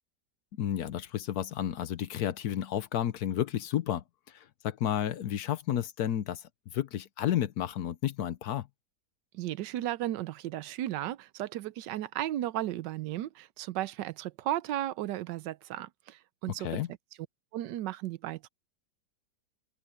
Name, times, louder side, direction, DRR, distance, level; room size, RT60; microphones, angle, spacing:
voice 1, 0.6-8.7 16.6-16.9, left 11 dB, 65° left, 1.2 m, -32 dB
voice 2, 9.3-16.7 17.5-18.5, right 13 dB, 85° right, 1.3 m, -35 dB
open air
omnidirectional pair, 1.8 m